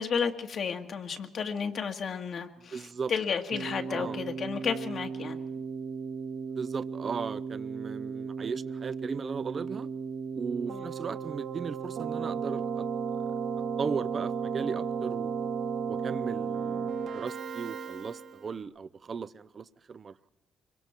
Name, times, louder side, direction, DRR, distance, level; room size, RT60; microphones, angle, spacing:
voice 1, 0.0-5.4 10.7-10.8, left 6 dB, 55° left, 1.9 m, -32 dB
voice 2, 2.7-3.1 3.9-4.2 6.4-9.9 10.3-12.9 13.8-15.5 15.9-20.3, right 5 dB, 45° right, 0.7 m, -37 dB
Keyboard (musical), 3.5-18.6, right 6 dB, 70° right, 1.8 m, -35 dB
25.0 x 23.0 x 4.5 m
cardioid pair, 90°, 0 cm